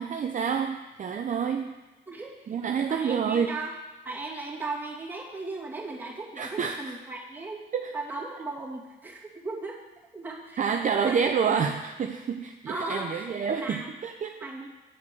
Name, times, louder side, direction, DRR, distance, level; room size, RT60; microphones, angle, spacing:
voice 1, 0.0-1.7 2.5-3.5 6.4-6.9 7.7-7.9 10.6-14.3, right 6 dB, 40° right, 5 dB, 0.6 m, -28 dB
voice 2, 2.1-3.7 4.0-7.6 7.9-9.8 10.1-10.7 11.0-11.2 12.7-13.3 13.6-13.9 14.4-14.7, right 3 dB, 10° right, -5 dB, 2.4 m, -37 dB
8.5 x 4.9 x 6.9 m, 1.1 s
cardioid pair, 90°, 20 cm